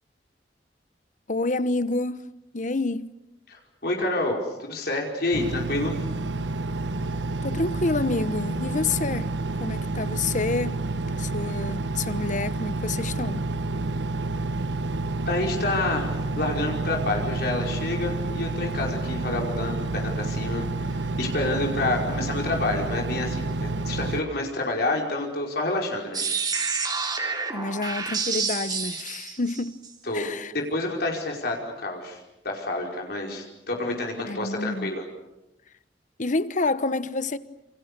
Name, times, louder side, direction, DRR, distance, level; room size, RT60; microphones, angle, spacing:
voice 1, 1.3-2.2 2.5-3.1 7.4-9.3 9.6-10.8 11.1-13.5 27.5-29.8 30.1-30.5 34.2-34.9 36.2-37.4, left 3 dB, 45° left, 1.1 m, -28 dB
voice 2, 3.5-5.9 15.3-26.2 30.0-30.3 30.5-35.0, left 2 dB, 65° left, 5.1 m, -28 dB
Engine, 5.3-24.2, right 2 dB, 85° right, 1.1 m, -29 dB
sound 1, 26.1-29.9, right 5 dB, 25° right, 3.6 m, -29 dB
28.5 x 28.0 x 6.9 m
head